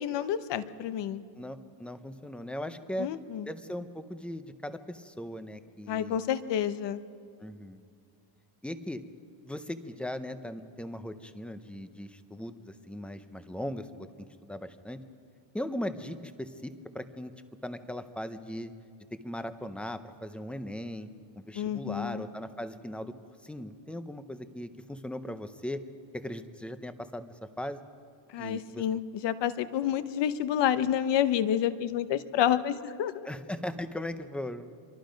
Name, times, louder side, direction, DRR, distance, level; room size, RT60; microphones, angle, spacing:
voice 1, 0.0-1.2 3.0-3.5 5.9-7.0 21.5-22.2 28.3-33.3, left 10 dB, 60° left, 12 dB, 1.0 m, -29 dB
voice 2, 1.4-3.1 3.5-6.2 7.4-7.8 8.6-9.0 9.4-13.9 14.4-15.0 15.5-17.3 17.6-18.7 19.2-21.1 21.4-23.1 23.4-25.8 26.1-27.8 28.4-28.8 33.3-34.7, left 1 dB, ahead, 10 dB, 0.6 m, -38 dB
27.0 x 23.5 x 5.2 m, 2.2 s
cardioid pair, 165°, 47 cm